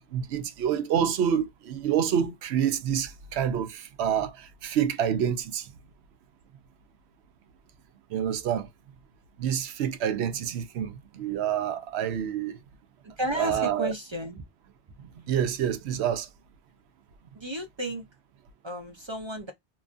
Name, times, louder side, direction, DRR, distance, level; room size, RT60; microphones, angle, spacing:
voice 1, 0.0-5.7 8.1-8.7 9.4-12.6 13.4-13.9 15.2-16.3, right 9 dB, 85° right, 0.9 m, -27 dB
voice 2, 13.2-14.4 17.3-18.0 18.6-19.5, equal, 40° right, 0.4 m, -33 dB
2.9 x 2.4 x 2.4 m
omnidirectional pair, 1.1 m